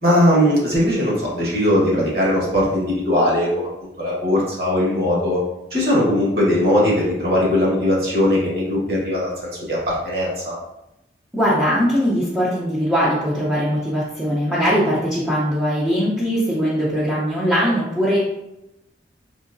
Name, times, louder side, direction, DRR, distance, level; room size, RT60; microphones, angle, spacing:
voice 1, 0.0-5.4 5.7-10.6, left 1 dB, 55° right, -5 dB, 1.3 m, -19 dB
voice 2, 11.3-18.2, equal, 5° right, -9 dB, 0.5 m, -20 dB
3.8 x 3.0 x 2.5 m, 0.89 s
head